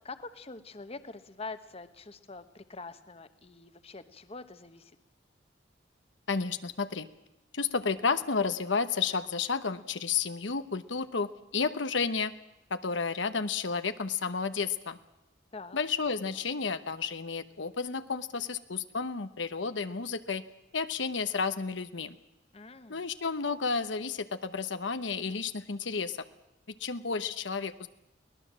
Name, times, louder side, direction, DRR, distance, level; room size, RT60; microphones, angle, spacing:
voice 1, 0.0-4.9 15.5-15.8 22.5-23.0, left 3 dB, 35° left, 11 dB, 1.2 m, -44 dB
voice 2, 6.3-7.1 7.5-12.3 12.7-15.0 15.7-20.4 20.7-22.1 22.9-26.2 26.8-27.9, left 5 dB, 80° left, 11 dB, 1.0 m, -31 dB
23.5 x 18.5 x 7.5 m, 0.91 s
head